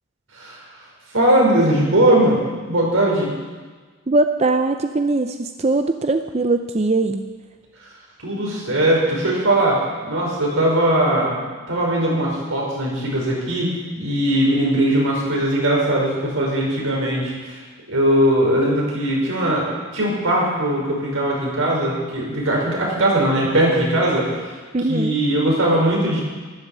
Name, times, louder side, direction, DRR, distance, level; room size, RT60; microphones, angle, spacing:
voice 1, 1.1-3.3 8.2-17.5 17.9-19.7 19.9-24.3 24.9-26.2, right 1 dB, 90° right, -3 dB, 5.4 m, -19 dB
voice 2, 4.1-7.3 24.7-25.2, right 2 dB, 30° right, 7 dB, 0.5 m, -20 dB
13.0 x 12.0 x 7.4 m, 1.4 s
head